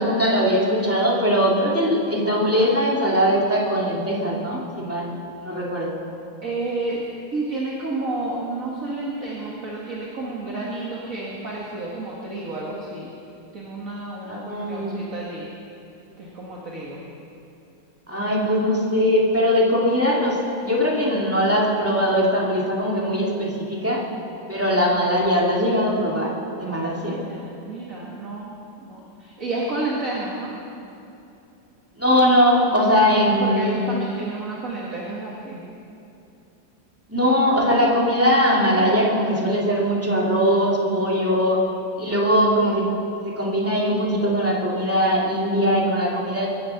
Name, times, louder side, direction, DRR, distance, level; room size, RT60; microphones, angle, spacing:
voice 1, 0.0-5.2 5.4-6.0 14.2-14.9 18.1-24.0 24.5-27.2 32.0-33.8 37.1-41.6 42.0-42.9 43.2-46.5, equal, 10° right, -4 dB, 2.5 m, -20 dB
voice 2, 6.4-7.1 7.3-13.1 13.5-15.5 16.2-17.0 26.6-30.5 32.7-35.6, right 2 dB, 50° right, -5 dB, 2.2 m, -31 dB
23.0 x 10.0 x 5.9 m, 2.7 s
omnidirectional pair, 1.9 m